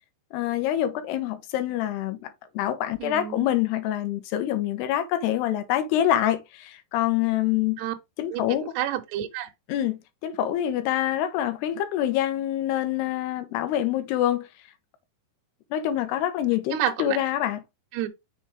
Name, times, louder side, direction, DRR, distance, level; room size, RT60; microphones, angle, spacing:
voice 1, 0.3-7.8 8.2-8.7 9.7-14.5 15.7-17.6, left 12 dB, 75° left, 2.8 m, -26 dB
voice 2, 3.0-3.5 7.8-7.9 8.3-9.5 16.7-17.2 17.9-18.1, right 12 dB, 75° right, 2.7 m, -30 dB
6.8 x 5.3 x 3.6 m
omnidirectional pair, 5.3 m